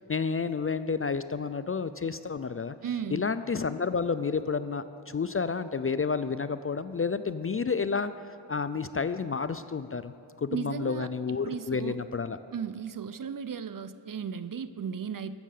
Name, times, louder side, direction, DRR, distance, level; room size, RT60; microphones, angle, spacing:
voice 1, 0.1-2.8 3.1-8.1 8.5-12.4, left 5 dB, 30° left, 13 dB, 0.4 m, -30 dB
voice 2, 2.8-3.2 10.5-12.0 12.5-15.4, right 7 dB, 45° right, 13 dB, 0.6 m, -35 dB
15.0 x 6.6 x 6.5 m, 2.7 s
cardioid pair, 45°, 45 cm